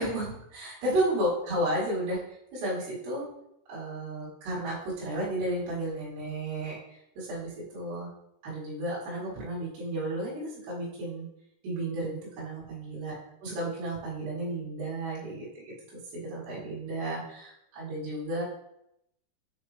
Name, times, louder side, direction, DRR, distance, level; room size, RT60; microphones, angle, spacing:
voice 1, 0.0-2.2 2.5-3.2 3.7-8.1 8.4-11.3 11.6-13.2 13.4-18.4, right 1 dB, 80° right, -8 dB, 4.1 m, -33 dB
7.8 x 4.0 x 3.3 m, 0.78 s
omnidirectional pair, 4.8 m